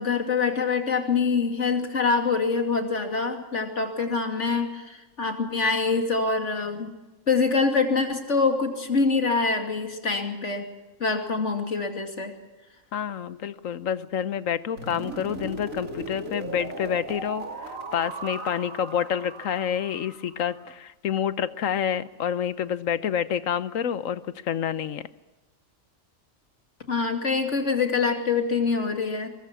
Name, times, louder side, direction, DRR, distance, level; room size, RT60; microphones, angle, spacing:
voice 1, 0.0-6.9 7.3-10.6 11.0-12.3 26.9-29.3, left 4 dB, 60° left, 5 dB, 3.0 m, -25 dB
voice 2, 12.9-25.0, left 9 dB, 75° left, 15 dB, 1.3 m, -28 dB
sound 1, 14.8-20.7, right 3 dB, 85° right, 2.8 m, -37 dB
23.5 x 22.0 x 6.0 m, 1.1 s
omnidirectional pair, 1.4 m